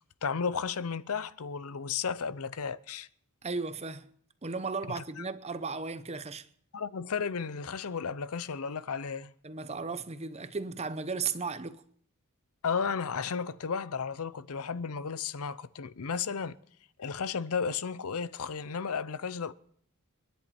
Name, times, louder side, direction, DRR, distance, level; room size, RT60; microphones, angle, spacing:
voice 1, 0.2-3.1 5.2-5.3 6.7-9.3 12.6-16.6 17.0-19.5, left 6 dB, 75° left, 0.6 m, -33 dB
voice 2, 3.4-4.1 4.4-6.5 9.4-11.8, right 4 dB, 30° right, 0.8 m, -35 dB
29.5 x 10.5 x 4.3 m
head